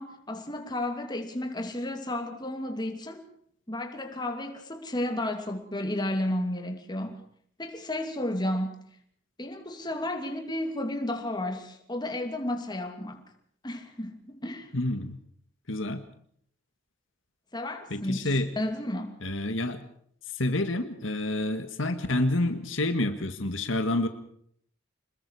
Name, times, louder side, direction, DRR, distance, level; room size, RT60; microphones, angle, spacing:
voice 1, 0.0-3.2 3.7-7.2 7.6-8.8 9.4-13.2 13.6-14.7 17.5-19.2, left 1 dB, 20° left, 2.9 m, -32 dB
voice 2, 14.7-15.2 15.7-16.0 17.9-18.5 19.2-19.8 20.3-24.1, left 1 dB, 75° left, 1.8 m, -28 dB
26.5 x 21.0 x 4.9 m
head